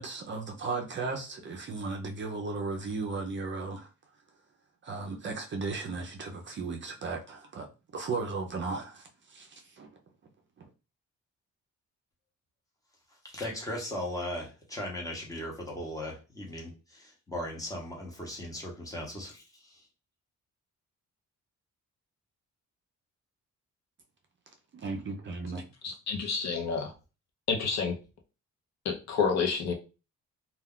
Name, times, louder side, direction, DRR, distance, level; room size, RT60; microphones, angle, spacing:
voice 1, 0.0-3.9 4.8-7.7 7.9-10.0 24.7-25.6, right 3 dB, 40° right, 0.4 m, -36 dB
voice 2, 13.2-19.8, left 1 dB, 10° left, 0.7 m, -38 dB
voice 3, 25.8-26.9 27.5-28.0 28.8-29.7, left 5 dB, 60° left, 0.6 m, -29 dB
2.3 x 2.3 x 3.5 m
wide cardioid pair, 175°, 31 cm